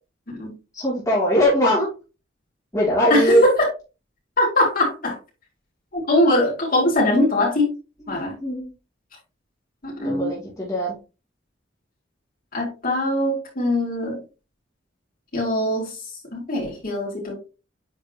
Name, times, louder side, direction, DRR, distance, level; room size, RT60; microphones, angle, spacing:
voice 1, 0.7-1.9 2.7-3.4 8.1-8.7 10.0-10.9, equal, 15° left, -7 dB, 3.0 m, -21 dB
voice 2, 3.1-3.5 4.4-5.2 5.9-7.7 8.1-8.3 9.8-10.3 12.5-14.2 15.3-16.0 16.3-17.4, left 1 dB, 50° left, -3 dB, 4.6 m, -21 dB
9.5 x 5.0 x 3.0 m, 0.30 s
head